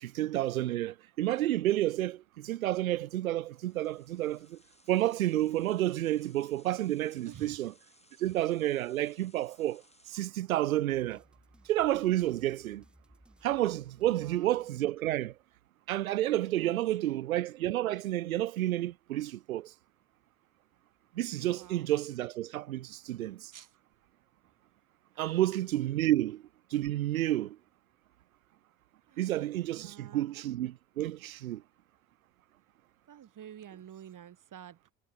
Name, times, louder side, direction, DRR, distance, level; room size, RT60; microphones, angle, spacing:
voice 1, 0.0-4.6 4.9-7.7 8.2-9.8 10.1-11.2 11.7-12.8 13.4-15.3 15.9-19.7 21.2-23.4 25.2-26.4 26.7-27.6 29.2-31.6, right 14 dB, 85° right, 0.6 m, -30 dB
sound 1, 3.4-10.3, left 2 dB, 15° left, 7.0 m, -64 dB
voice 2, 7.2-7.6 14.1-14.5 16.5-16.7 17.0-17.2 21.4-21.9 23.5-23.7 25.1-25.4 26.1-26.3 29.1-29.3 29.7-30.3 33.1-34.9, right 9 dB, 50° right, 3.2 m, -50 dB
sound 2, 10.9-15.2, equal, ahead, 6.1 m, -62 dB
figure-of-eight pair, 45°, 40 cm